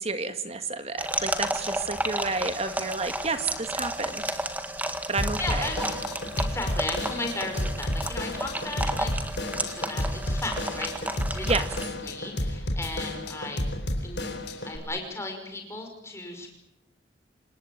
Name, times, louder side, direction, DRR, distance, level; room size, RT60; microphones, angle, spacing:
voice 1, 0.0-4.4 5.1-5.7 11.4-11.7, right 3 dB, 30° right, 9 dB, 1.9 m, -30 dB
sound 1, 1.0-11.9, right 1 dB, 10° right, 1.8 m, -32 dB
Drum kit / Drum, 5.2-14.8, left 1 dB, 60° left, 4.1 m, -31 dB
voice 2, 5.4-5.9 6.4-11.6 12.0-13.6 14.0-14.2 14.6-16.5, left 2 dB, 15° left, 3 dB, 5.5 m, -36 dB
28.0 x 19.0 x 9.3 m, 0.86 s
head